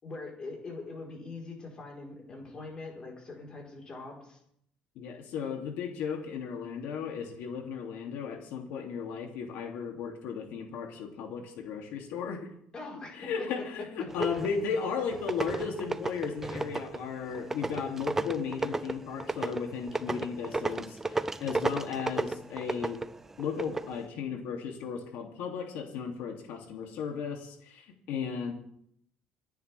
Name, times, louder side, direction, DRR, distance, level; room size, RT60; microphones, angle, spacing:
voice 1, 0.0-4.4 12.7-14.5, left 3 dB, 25° left, -1 dB, 4.4 m, -41 dB
voice 2, 5.0-12.5 12.9-23.0 23.4-28.5, left 6 dB, 75° left, 2 dB, 2.8 m, -35 dB
sound 1, 14.1-14.7 15.1-23.9, right 3 dB, 10° right, 0.5 m, -34 dB
28.5 x 10.5 x 3.5 m, 0.70 s
cardioid pair, 160°, 3 cm